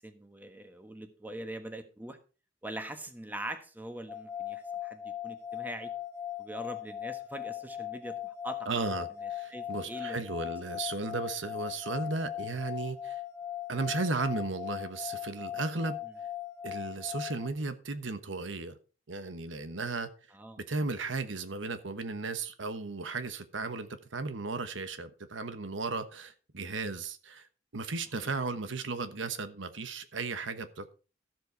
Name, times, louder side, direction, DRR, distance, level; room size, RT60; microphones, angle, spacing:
voice 1, 0.0-2.2 2.6-5.9 6.4-8.8 9.5-10.2 20.3-20.6 28.2-28.3, right 1 dB, 10° right, 1.3 m, -42 dB
sound 1, 4.1-17.5, left 10 dB, 15° left, 0.8 m, -39 dB
voice 2, 8.7-13.2 13.7-16.0 16.6-18.7 19.1-20.1 20.6-27.5 27.7-30.9, right 3 dB, 75° right, 1.2 m, -35 dB
13.5 x 7.7 x 4.6 m
head